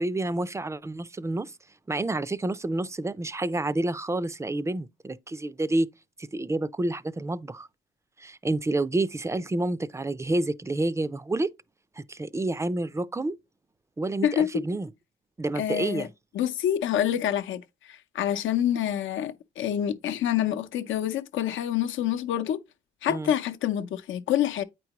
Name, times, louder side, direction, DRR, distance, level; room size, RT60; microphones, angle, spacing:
voice 1, 0.0-1.5 1.9-5.9 6.3-7.7 8.2-11.5 12.0-13.4 14.0-14.9 15.4-16.1 23.1-23.3, right 2 dB, 15° right, 0.4 m, -29 dB
voice 2, 14.2-14.6 15.6-16.1 16.3-22.6 23.0-24.6, left 10 dB, 75° left, 0.7 m, -27 dB
8.8 x 4.7 x 2.9 m
cardioid pair, 90°, 20 cm